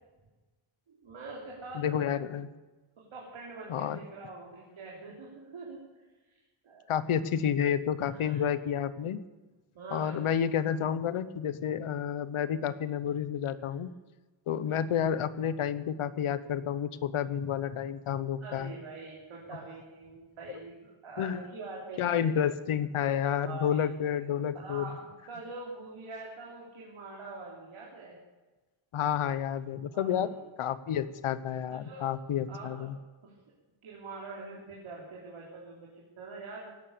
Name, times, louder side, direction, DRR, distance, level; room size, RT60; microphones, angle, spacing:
voice 1, 0.9-2.1 3.1-5.8 6.6-6.8 8.1-8.5 9.8-10.2 13.6-13.7 18.4-22.3 23.5-23.8 24.5-25.0 25.2-28.2 29.9-30.3 31.8-32.1 32.5-32.9 33.2-33.3 33.8-36.7, right 3 dB, 70° right, -3 dB, 3.5 m, -44 dB
voice 2, 1.7-2.5 3.7-4.0 6.9-9.2 9.9-13.9 14.5-18.7 21.2-21.4 22.0-24.9 28.9-30.3 30.6-32.9, left 8 dB, 80° left, 15 dB, 1.0 m, -30 dB
17.5 x 11.5 x 6.8 m, 1.2 s
wide cardioid pair, 170°, 49 cm